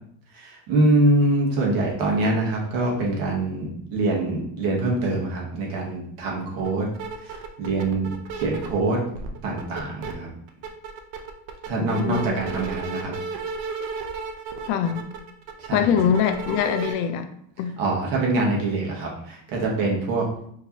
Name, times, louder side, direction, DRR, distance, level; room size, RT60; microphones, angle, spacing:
voice 1, 0.3-6.9 7.2-9.0 9.4-10.3 11.7-13.1 15.6-15.9 17.8-20.3, right 2 dB, 50° right, -2 dB, 1.1 m, -24 dB
sound 1, 6.6-6.7 6.9-8.8 9.1-10.1 10.5-16.9, right 5 dB, 70° right, 0.7 m, -33 dB
voice 2, 11.9-12.5 14.7-15.0 15.7-17.3 17.6-17.7, left 8 dB, 75° left, 8 dB, 0.6 m, -23 dB
4.5 x 2.8 x 2.8 m, 0.67 s
cardioid pair, 175°, 45 cm